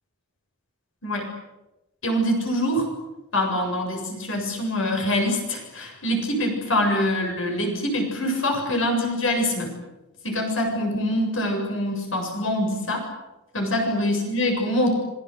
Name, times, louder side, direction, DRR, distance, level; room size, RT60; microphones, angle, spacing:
voice 1, 2.0-2.9 3.3-9.7 10.2-13.0 13.5-14.9, left 1 dB, 60° left, 2 dB, 7.4 m, -24 dB
27.0 x 23.5 x 8.2 m, 0.99 s
head